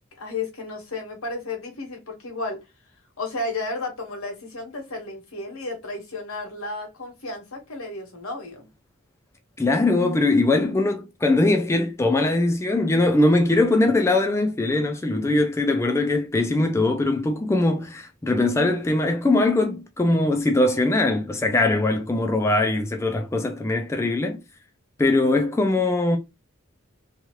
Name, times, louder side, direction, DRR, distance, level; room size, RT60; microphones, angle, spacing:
voice 1, 0.2-2.6 3.2-8.7, left 2 dB, 80° left, 1.2 m, -33 dB
voice 2, 9.6-24.4 25.0-26.2, left 2 dB, 15° left, 0.3 m, -21 dB
2.8 x 2.4 x 2.9 m
head